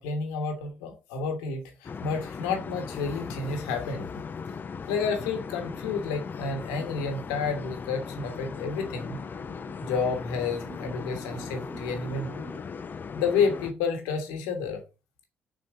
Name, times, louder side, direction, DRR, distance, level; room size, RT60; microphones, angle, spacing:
voice 1, 0.0-4.1 4.9-9.2 9.8-12.4 13.2-14.8, left 5 dB, 70° left, 5 dB, 1.3 m, -30 dB
sound 1, 1.8-13.7, left 5 dB, 35° left, 0.6 m, -38 dB
sound 2, 7.4-12.6, right 2 dB, 45° right, 1.4 m, -47 dB
6.5 x 4.3 x 3.7 m, 0.28 s
figure-of-eight pair, 45°, 6 cm